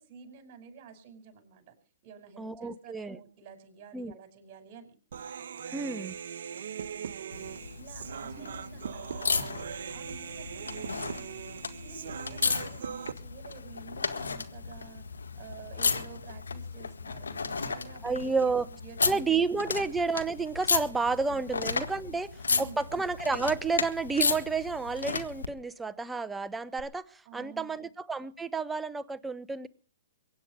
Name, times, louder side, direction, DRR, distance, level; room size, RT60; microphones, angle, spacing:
voice 1, 0.0-1.8 2.0-5.0 7.7-9.6 9.9-11.4 11.8-15.0 15.3-19.8 20.8-21.6 22.1-22.2 22.5-22.9 27.3-27.9, right 5 dB, 40° right, 7 dB, 5.6 m, -50 dB
voice 2, 2.4-3.2 3.9-4.1 5.7-6.2 18.0-18.7 19.1-22.3 22.6-27.0 27.3-29.7, right 4 dB, 10° right, 14 dB, 0.8 m, -30 dB
Human voice, 5.1-13.1, right 7 dB, 70° right, 0.9 m, -40 dB
sound 1, 7.3-25.5 26.8-26.9, left 4 dB, 90° left, 1.7 m, -34 dB
23.5 x 9.6 x 5.0 m, 0.38 s
hypercardioid pair, 130°, 0 cm